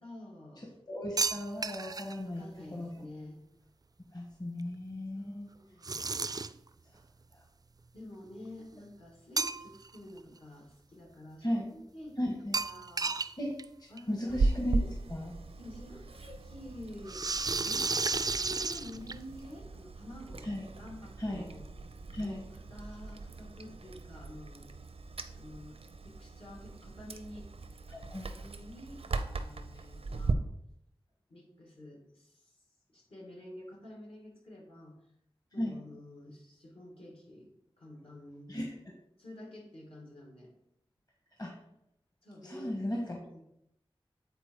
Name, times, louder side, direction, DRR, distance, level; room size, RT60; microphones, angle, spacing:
voice 1, 0.0-0.7 2.2-3.4 5.1-5.9 7.9-11.5 11.7-12.2 12.6-13.2 13.9-14.4 15.6-17.2 17.6-17.9 18.3-21.7 22.2-24.7 25.3-27.5 28.2-29.0 29.3-30.4 31.3-32.5 32.9-35.0 35.5-38.6 39.2-40.5 42.2-42.9 43.2-43.4, left 1 dB, 70° left, 0 dB, 2.4 m, -49 dB
voice 2, 0.9-3.1 4.1-5.5 6.9-7.0 7.3-7.4 11.4-11.7 12.2-12.6 13.4-13.5 13.8-14.8 15.1-15.4 20.4-20.7 21.2-21.5 22.1-22.4 27.9-28.3 29.7-29.8 35.6-35.8 38.5-38.7 41.4-41.5 42.4-43.2, left 1 dB, 40° left, 0 dB, 1.4 m, -36 dB
sound 1, 1.2-2.2 5.8-6.7 9.4-9.9 10.3-10.4 12.5-13.3 13.6-13.7 14.0-14.1 15.3-15.4 17.1-19.4, right 4 dB, 40° right, 0.3 m, -32 dB
Chewing mastication, 14.3-30.3, right 3 dB, 90° right, 0.6 m, -38 dB
9.0 x 4.2 x 4.7 m, 0.79 s
wide cardioid pair, 60°, 10 cm